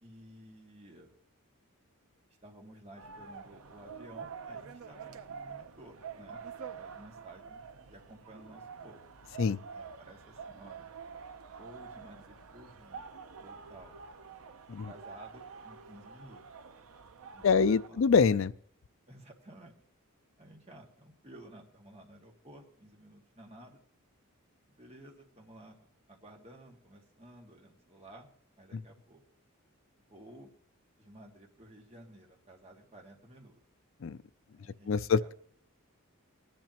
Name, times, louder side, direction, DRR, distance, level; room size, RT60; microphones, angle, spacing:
voice 1, 0.0-1.1 2.4-6.4 6.7-9.0 9.7-10.9 11.6-14.0 14.7-16.5 17.3-18.1 19.1-19.7 20.4-23.8 24.7-28.3 28.6-29.2 30.1-30.5 31.0-33.6 34.5-35.3, right 1 dB, 30° right, 2.0 m, -54 dB
sound 1, 3.0-17.9, right 6 dB, 80° right, 0.8 m, -47 dB
voice 2, 17.4-18.5 34.0-34.2 34.9-35.3, left 5 dB, 60° left, 0.4 m, -25 dB
20.0 x 10.5 x 3.0 m
head